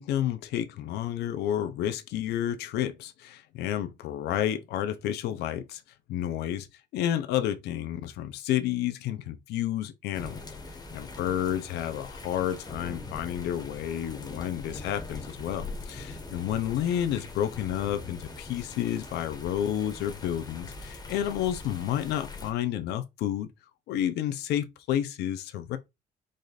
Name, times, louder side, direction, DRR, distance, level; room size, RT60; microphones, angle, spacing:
voice 1, 0.0-5.8 6.1-10.4 10.7-23.5 23.9-25.8, left 11 dB, 80° left, 0.7 m, -30 dB
sound 1, 10.1-22.5, left 3 dB, 25° left, 1.3 m, -42 dB
5.0 x 2.5 x 4.0 m
cardioid pair, 110°, 17 cm